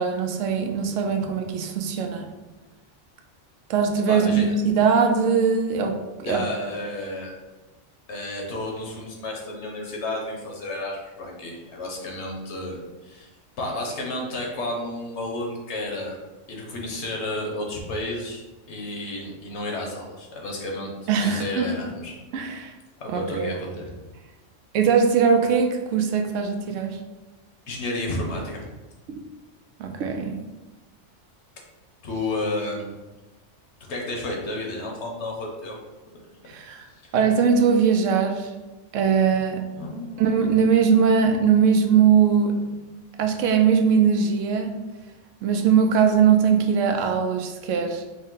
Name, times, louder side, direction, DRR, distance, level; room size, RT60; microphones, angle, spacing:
voice 1, 0.0-2.3 3.7-6.4 21.1-21.7 22.3-22.7 23.1-23.5 24.7-27.0 29.8-30.4 36.5-36.8 37.1-38.5 38.9-39.6 40.2-42.6 43.2-44.8 45.4-48.0, right 6 dB, 85° right, 4 dB, 0.9 m, -21 dB
voice 2, 4.1-4.5 6.2-7.3 8.1-13.3 13.6-16.2 16.5-22.2 23.0-24.0 27.7-28.7 32.0-32.9 33.9-35.8 36.9-37.1 39.8-40.2, left 1 dB, 65° left, 0 dB, 1.1 m, -31 dB
5.1 x 2.1 x 3.7 m, 1.1 s
omnidirectional pair, 1.3 m